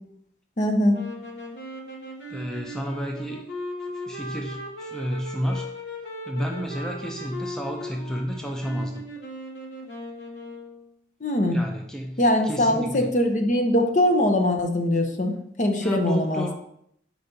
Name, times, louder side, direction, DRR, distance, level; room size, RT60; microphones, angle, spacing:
voice 1, 0.6-1.0 11.2-11.6 12.2-16.5, left 1 dB, 45° left, 4 dB, 0.7 m, -22 dB
sound 1, 0.9-10.9, left 1 dB, 85° left, 1.1 m, -38 dB
voice 2, 2.3-3.4 4.1-5.7 6.3-9.0 11.5-12.2 12.5-13.1 15.8-16.5, equal, 5° left, 1 dB, 0.5 m, -31 dB
4.6 x 4.1 x 5.2 m, 0.72 s
head